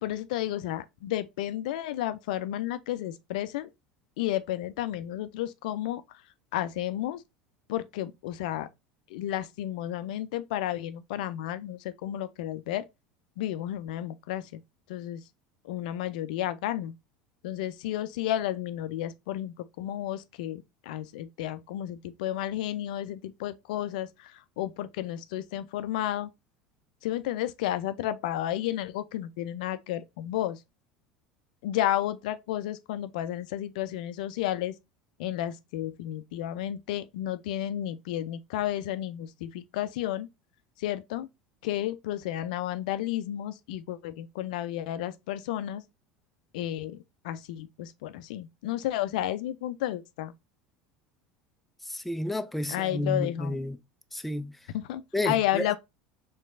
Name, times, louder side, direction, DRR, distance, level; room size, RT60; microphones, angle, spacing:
voice 1, 0.0-3.7 4.2-6.0 6.5-7.2 7.7-8.7 9.1-12.8 13.4-14.6 14.9-15.2 15.6-16.9 17.4-26.3 27.0-30.6 31.6-34.7 35.2-40.3 40.8-41.3 41.6-45.8 46.5-47.0 47.2-50.3 52.7-53.6 54.7-55.8, left 13 dB, 65° left, 0.4 m, -32 dB
voice 2, 51.8-53.8 54.1-54.6 55.1-55.8, left 1 dB, 5° left, 0.4 m, -31 dB
4.5 x 3.1 x 2.5 m
figure-of-eight pair, 75°, 5 cm